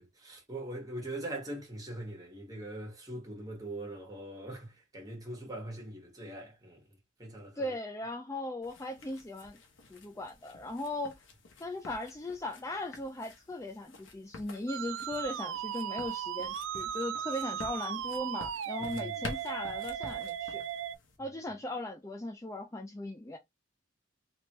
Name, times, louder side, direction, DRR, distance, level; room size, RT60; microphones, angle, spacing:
voice 1, 0.0-6.8 7.2-7.7 18.8-19.2, right 1 dB, 20° right, 1.7 m, -42 dB
voice 2, 7.6-9.6 9.9-11.1 11.6-20.6 21.2-23.4, left 1 dB, 15° left, 0.4 m, -38 dB
sound 1, 8.6-21.2, left 3 dB, 85° left, 1.1 m, -50 dB
Musical instrument, 14.7-21.0, right 9 dB, 80° right, 0.4 m, -37 dB
3.3 x 3.1 x 3.1 m
head